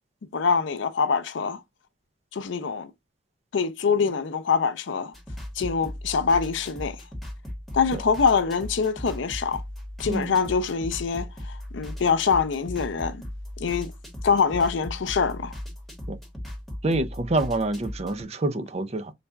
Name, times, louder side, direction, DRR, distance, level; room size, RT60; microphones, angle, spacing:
voice 1, 0.3-1.6 2.3-2.9 3.5-5.1 5.6-7.0 7.7-9.6 10.0-13.3 13.6-13.9 14.2-15.6, left 5 dB, 75° left, 0.5 m, -24 dB
sound 1, 5.1-18.2, left 1 dB, ahead, 1.0 m, -38 dB
voice 2, 16.8-19.1, right 2 dB, 35° right, 0.5 m, -27 dB
4.0 x 2.3 x 3.4 m
head